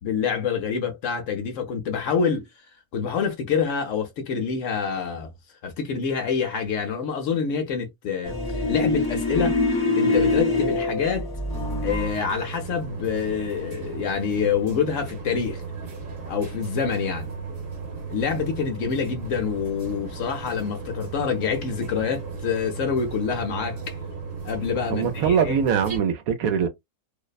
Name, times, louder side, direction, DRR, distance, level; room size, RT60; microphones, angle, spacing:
voice 1, 0.0-2.4 2.9-5.3 5.6-9.5 9.9-11.3 11.8-15.6 16.3-17.3 18.1-23.9 24.4-25.5, left 6 dB, 65° left, 0.9 m, -26 dB
sound 1, 8.2-12.2, left 2 dB, 25° left, 0.6 m, -24 dB
sound 2, 11.5-26.0, right 4 dB, 45° right, 1.1 m, -35 dB
voice 2, 24.9-26.7, right 7 dB, 75° right, 1.0 m, -22 dB
2.7 x 2.1 x 2.3 m
omnidirectional pair, 1.6 m